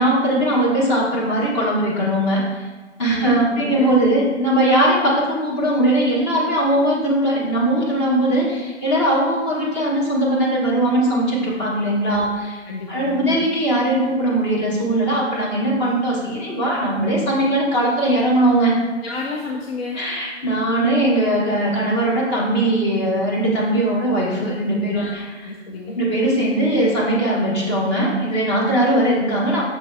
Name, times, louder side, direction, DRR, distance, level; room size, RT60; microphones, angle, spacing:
voice 1, 0.0-2.7 3.0-12.6 12.9-18.8 19.9-25.5 25.9-29.6, right 1 dB, 25° left, -4 dB, 1.1 m, -20 dB
voice 2, 3.1-3.9 12.1-12.3 12.7-13.4 19.0-20.0 24.9-25.1 25.5-26.0 28.7-28.8, left 3 dB, 55° left, 0 dB, 0.6 m, -31 dB
5.8 x 3.9 x 2.2 m, 1.2 s
figure-of-eight pair, 135°, 36 cm